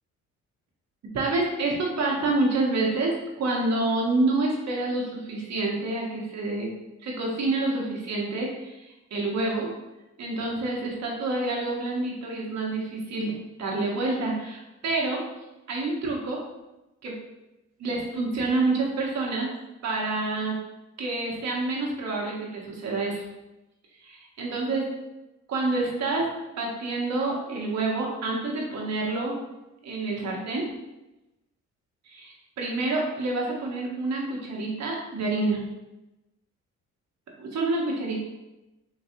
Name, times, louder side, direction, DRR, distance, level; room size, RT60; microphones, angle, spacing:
voice 1, 1.1-6.7 7.0-9.7 10.2-15.2 15.7-16.4 17.0-17.2 17.8-19.5 19.8-20.6 21.0-23.2 23.9-24.9 25.5-26.3 26.6-29.4 29.8-30.7 32.0-35.6 37.4-38.2, right 2 dB, 60° right, -2 dB, 1.1 m, -28 dB
3.8 x 3.1 x 2.7 m, 0.98 s
cardioid pair, 90°, 30 cm